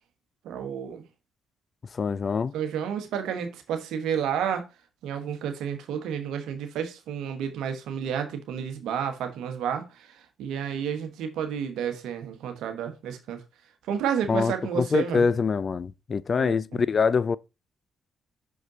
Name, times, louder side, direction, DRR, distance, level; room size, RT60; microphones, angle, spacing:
voice 1, 0.4-1.0 2.5-4.6 5.0-13.4 13.9-15.3 16.3-16.8, right 8 dB, 75° right, 1.2 m, -31 dB
voice 2, 1.9-2.5 14.3-17.4, left 5 dB, 45° left, 0.4 m, -25 dB
6.0 x 5.0 x 3.9 m
hypercardioid pair, 50°, 0 cm